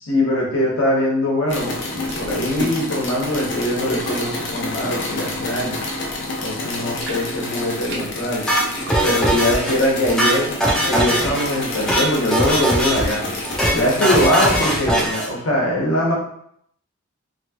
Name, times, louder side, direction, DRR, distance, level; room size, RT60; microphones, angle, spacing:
voice 1, 0.0-5.8 6.4-8.5 9.0-10.5 10.8-13.3 13.7-16.1, left 1 dB, 80° left, -3 dB, 0.9 m, -22 dB
sound 1, 1.5-14.9, left 2 dB, 55° left, 0.5 m, -29 dB
sound 2, 1.7-6.2 6.5-14.6, right 1 dB, 55° right, 0.5 m, -35 dB
sound 3, 8.5-9.7 10.0-11.4 11.7-12.1 12.3-13.1 13.4-13.7 14.0-15.3, right 1 dB, 5° left, 0.4 m, -20 dB
2.8 x 2.3 x 2.8 m, 0.68 s
head